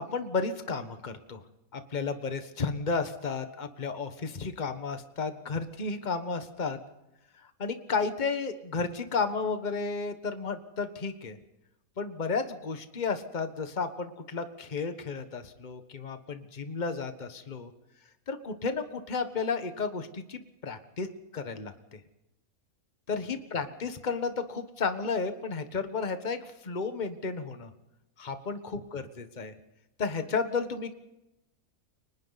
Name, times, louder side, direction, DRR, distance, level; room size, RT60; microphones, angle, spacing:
voice 1, 0.0-1.4 1.7-6.8 7.4-11.4 12.0-17.7 18.3-22.0 23.1-27.7 28.2-29.5 30.0-31.0, left 4 dB, 35° left, 8 dB, 1.4 m, -33 dB
29.5 x 24.0 x 4.1 m, 0.92 s
omnidirectional pair, 1.5 m